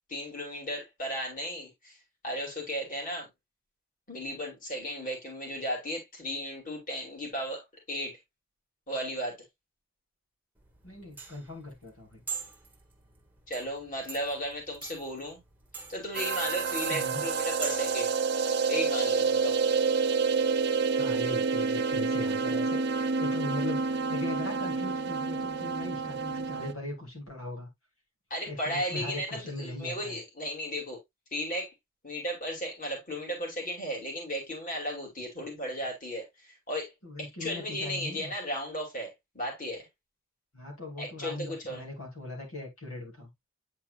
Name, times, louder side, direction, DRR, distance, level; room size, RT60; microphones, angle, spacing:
voice 1, 0.1-2.0 2.2-3.3 4.1-8.2 8.9-9.3 13.5-15.4 15.9-18.1 18.7-19.6 28.3-31.0 31.3-31.7 32.0-36.9 37.2-39.9 41.0-41.8, equal, 40° left, 2.8 m, -35 dB
sound 1, 10.6-18.0, right 5 dB, 10° right, 1.2 m, -43 dB
voice 2, 10.8-12.2 16.9-17.2 20.9-27.7 28.4-30.2 37.0-38.3 40.5-43.3, left 2 dB, 75° left, 2.7 m, -39 dB
sound 2, 16.1-26.7, right 4 dB, 50° right, 0.6 m, -28 dB
8.6 x 4.6 x 2.4 m
head